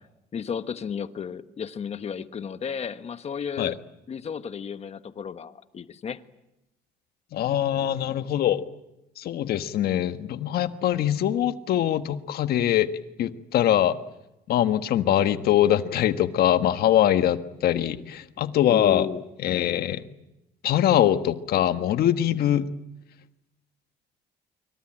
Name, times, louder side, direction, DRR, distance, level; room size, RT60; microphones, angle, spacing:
voice 1, 0.3-3.8 4.1-6.2 18.7-19.2, left 7 dB, 40° left, 11 dB, 1.3 m, -33 dB
voice 2, 7.3-8.6 9.2-12.9 13.2-14.0 14.5-19.1 19.4-20.0 20.6-22.7, left 11 dB, 65° left, 10 dB, 1.5 m, -23 dB
25.5 x 24.0 x 8.9 m, 0.93 s
cardioid pair, 110°, 17 cm